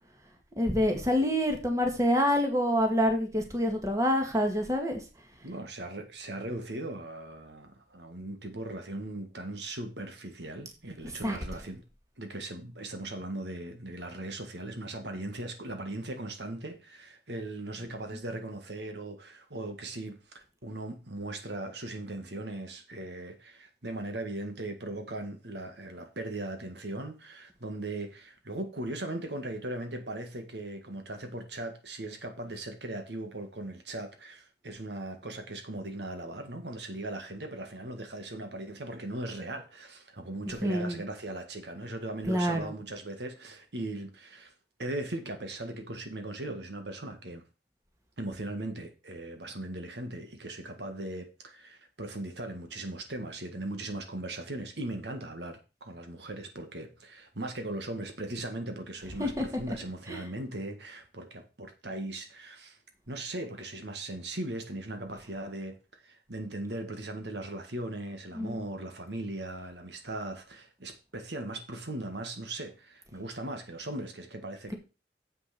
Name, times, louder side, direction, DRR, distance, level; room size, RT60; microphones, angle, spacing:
voice 1, 0.6-5.0 11.2-11.4 40.6-41.0 42.3-42.7 59.2-59.8 60.1-60.2 68.3-68.6, equal, 20° right, 1.9 m, -27 dB
voice 2, 5.4-11.8 12.2-44.5 44.8-47.4 48.2-62.8 63.1-74.7, right 1 dB, 80° right, 1.8 m, -39 dB
7.7 x 6.3 x 5.9 m
head